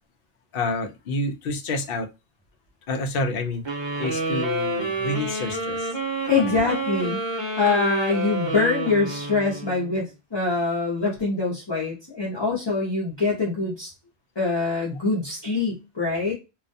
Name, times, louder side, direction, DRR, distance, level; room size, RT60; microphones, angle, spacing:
voice 1, 0.5-2.1 2.9-3.6 4.0-6.0 6.3-6.6 14.9-15.0, left 2 dB, 65° left, 6 dB, 0.7 m, -29 dB
sound 1, 3.7-10.1, right 2 dB, 30° right, 0.8 m, -29 dB
voice 2, 6.3-7.2 7.6-13.9 14.4-16.3, left 3 dB, 30° left, -4 dB, 0.6 m, -24 dB
2.3 x 2.2 x 2.5 m, 0.27 s
omnidirectional pair, 1.1 m